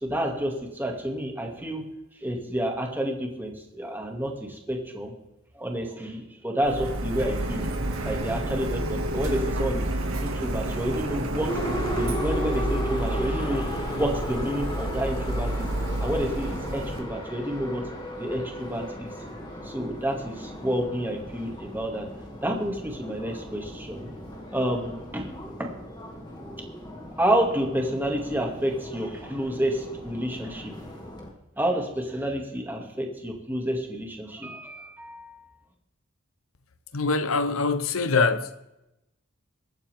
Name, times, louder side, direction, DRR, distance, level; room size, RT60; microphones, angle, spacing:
voice 1, 0.0-1.8 2.2-5.1 5.5-7.7 8.0-9.9 10.2-11.6 11.9-15.5 16.0-17.9 18.2-19.1 19.6-22.1 22.4-24.1 24.5-25.3 25.6-25.7 27.2-30.7 31.6-35.4, equal, 10° right, 2.3 m, -29 dB
Printer, 6.6-17.0, right 1 dB, 80° right, 2.1 m, -30 dB
Subway metro underground, 11.5-31.3, equal, 20° left, 2.3 m, -36 dB
voice 2, 36.9-38.5, left 4 dB, 80° left, 0.9 m, -24 dB
23.0 x 9.0 x 3.6 m
head